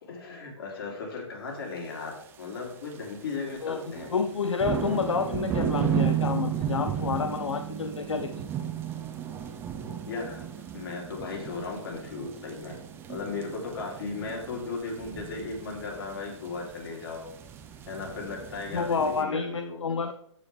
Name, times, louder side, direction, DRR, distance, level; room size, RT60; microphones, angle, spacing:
voice 1, 0.0-4.1 10.1-12.8 13.1-17.3 17.9-20.0, left 4 dB, 50° left, -1 dB, 3.4 m, -36 dB
sound 1, 2.1-2.4 2.9-3.1 3.5-19.2, right 10 dB, 15° right, 0.8 m, -34 dB
voice 2, 3.6-8.3 18.7-20.1, left 5 dB, 75° left, 8 dB, 0.7 m, -29 dB
14.0 x 4.8 x 3.5 m, 0.69 s
figure-of-eight pair, 135°, 16 cm